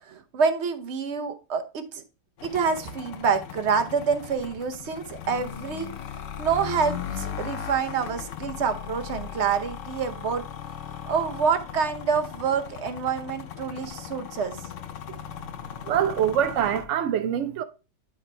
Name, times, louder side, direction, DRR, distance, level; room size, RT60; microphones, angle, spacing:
voice 1, 0.0-2.0 2.4-5.9 6.4-10.4 11.1-14.6, right 6 dB, 50° right, 0.9 m, -27 dB
sound 1, 2.4-16.8, left 9 dB, 60° left, 0.8 m, -38 dB
voice 2, 15.9-17.6, right 9 dB, 75° right, 0.6 m, -24 dB
10.0 x 4.3 x 3.2 m
omnidirectional pair, 1.8 m